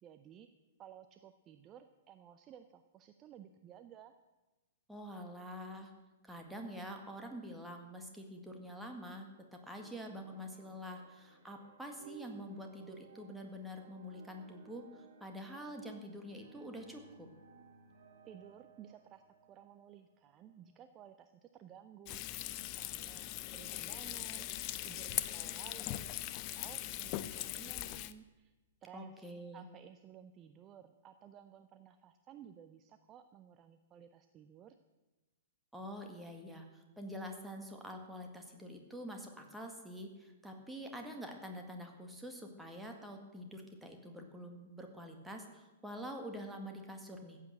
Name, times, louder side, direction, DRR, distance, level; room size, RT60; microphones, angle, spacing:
voice 1, 0.0-0.5 0.8-4.1 18.2-22.3 22.6-24.5 24.8-26.1 26.3-28.5 28.8-29.3 29.5-34.8, right 9 dB, 25° right, 9 dB, 0.6 m, -56 dB
voice 2, 4.9-5.9 6.2-17.3 28.9-29.6 35.7-47.4, equal, 5° right, 2 dB, 1.9 m, -46 dB
sound 1, 9.7-21.0, right 7 dB, 50° right, 2.7 m, -61 dB
Frying (food), 22.1-28.1, left 15 dB, 35° left, 0.6 m, -40 dB
15.0 x 8.4 x 7.8 m, 1.1 s
figure-of-eight pair, 110°, 0 cm